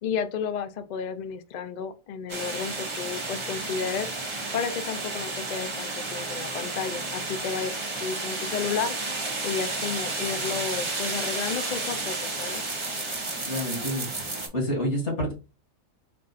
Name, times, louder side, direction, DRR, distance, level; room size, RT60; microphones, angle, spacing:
voice 1, 0.0-4.1 4.5-7.7 8.0-8.9 9.4-12.6, left 6 dB, 80° left, 10 dB, 0.4 m, -32 dB
sound 1, 2.3-14.5, right 2 dB, 25° right, 0.8 m, -32 dB
voice 2, 13.4-15.3, equal, 55° left, -1 dB, 2.3 m, -29 dB
4.4 x 2.4 x 4.0 m, 0.30 s
omnidirectional pair, 1.4 m